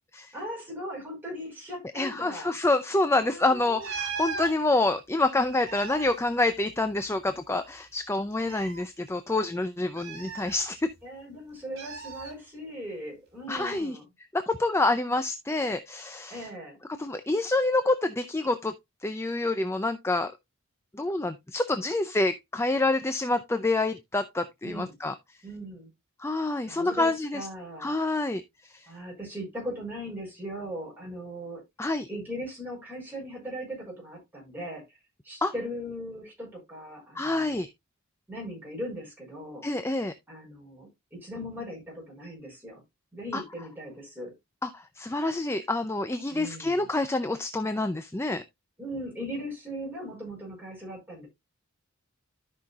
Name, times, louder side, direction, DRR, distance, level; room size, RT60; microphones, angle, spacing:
voice 1, 0.3-2.5 3.1-3.9 11.0-14.1 16.3-16.8 24.6-25.0 25.4-25.9 26.6-27.9 28.9-31.6 32.1-34.8 35.2-37.6 38.3-39.7 40.3-42.8 43.1-44.3 46.3-46.9 48.8-51.3, equal, 10° right, 5.3 m, -39 dB
voice 2, 1.9-10.9 13.5-14.0 14.3-16.5 17.0-18.7 19.0-20.3 20.9-25.1 26.2-27.5 27.8-28.9 31.8-32.1 35.4-35.5 37.2-37.7 39.6-40.1 43.3-43.4 44.6-48.4, left 2 dB, 10° left, 0.4 m, -27 dB
sound 1, 3.8-4.5 5.4-7.1 7.4-7.5 8.3-8.8 10.0-11.0 11.8-12.3 13.6-13.8, right 5 dB, 50° right, 6.4 m, -38 dB
13.0 x 5.7 x 2.3 m
head